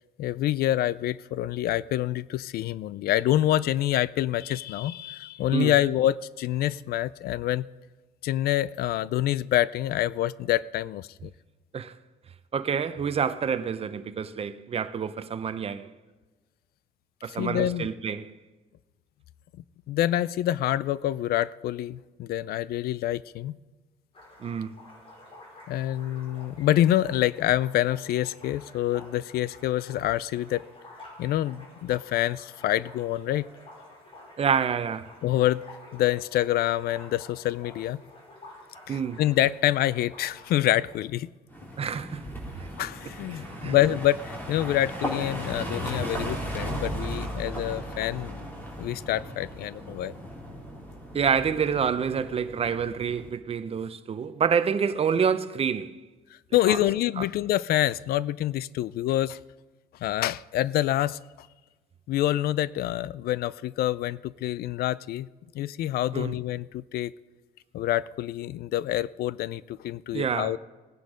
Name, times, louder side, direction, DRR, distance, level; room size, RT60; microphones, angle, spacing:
voice 1, 0.2-7.7 8.2-11.3 17.3-17.9 19.9-23.6 25.7-30.6 31.2-33.5 35.2-35.6 35.9-38.0 38.9-41.3 42.8-48.5 48.8-50.1 56.5-59.4 60.0-61.5 62.1-65.3 65.5-67.1 67.7-70.6, left 13 dB, 65° left, 0.4 m, -26 dB
voice 2, 12.5-15.9 17.2-18.3 24.4-24.7 34.4-35.1 38.9-39.2 41.8-42.2 43.3-43.8 51.1-56.0 56.7-56.8 57.2-57.3 66.1-66.4 70.1-70.5, right 7 dB, 35° right, 0.8 m, -27 dB
sound 1, 24.1-41.0, left 1 dB, 30° left, 5.0 m, -50 dB
sound 2, 41.5-53.3, equal, 10° left, 3.6 m, -36 dB
18.5 x 10.5 x 5.0 m
cardioid pair, 110°, 17 cm